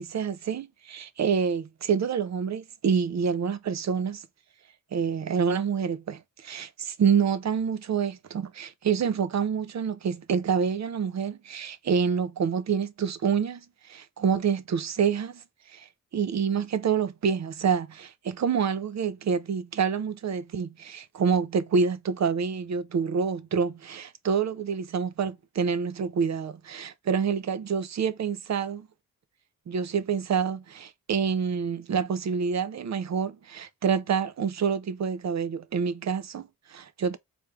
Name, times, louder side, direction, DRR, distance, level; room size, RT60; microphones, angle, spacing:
voice 1, 0.0-4.2 4.9-15.4 15.7-28.9 29.7-37.2, right 6 dB, 50° right, 0.6 m, -27 dB
3.4 x 2.6 x 4.6 m
supercardioid pair, 50°, 35 cm